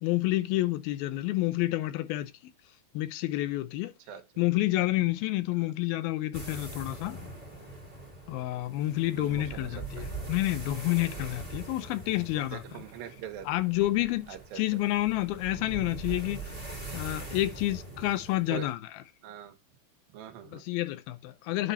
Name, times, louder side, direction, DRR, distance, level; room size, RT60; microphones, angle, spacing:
voice 1, 0.0-2.3 2.9-3.9 4.4-7.2 8.3-12.8 13.5-16.5 16.9-19.0 20.5-21.7, left 16 dB, 90° left, 2.6 m, -29 dB
sound 1, 6.3-18.7, right 2 dB, 5° right, 3.7 m, -42 dB
voice 2, 9.1-10.1 12.4-13.5 14.3-14.8 18.5-18.7 19.2-19.5 20.1-20.6, right 10 dB, 75° right, 2.9 m, -43 dB
9.6 x 5.4 x 5.4 m
omnidirectional pair, 4.2 m